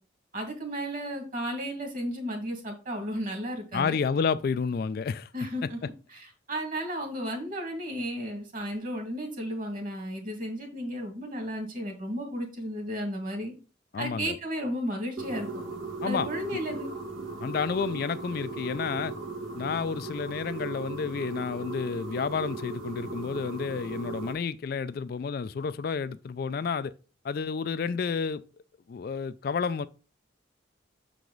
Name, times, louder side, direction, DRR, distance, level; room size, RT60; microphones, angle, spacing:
voice 1, 0.3-4.0 5.3-13.5 14.0-15.5 16.0-16.9, equal, 45° right, 2.0 m, -34 dB
voice 2, 3.7-5.3 13.9-14.4 16.0-16.3 17.4-19.1 19.5-26.9 27.2-28.4 28.9-29.9, left 5 dB, 50° left, 0.3 m, -30 dB
sound 1, 15.2-24.3, right 3 dB, 90° right, 1.5 m, -37 dB
6.8 x 4.8 x 3.9 m
head